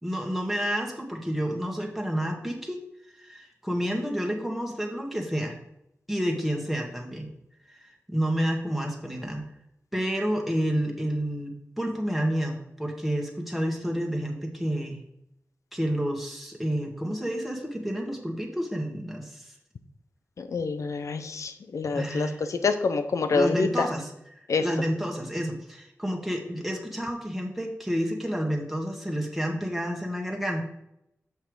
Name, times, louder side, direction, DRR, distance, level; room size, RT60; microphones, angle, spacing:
voice 1, 0.0-2.8 3.1-5.6 6.1-7.3 7.7-9.4 9.9-15.0 15.7-19.5 21.9-22.4 23.3-30.6, equal, ahead, 0 dB, 1.6 m, -30 dB
voice 2, 20.4-23.9 24.5-24.6, left 4 dB, 80° left, 9 dB, 0.8 m, -27 dB
6.7 x 5.8 x 4.8 m, 0.80 s
wide cardioid pair, 70°, 5 cm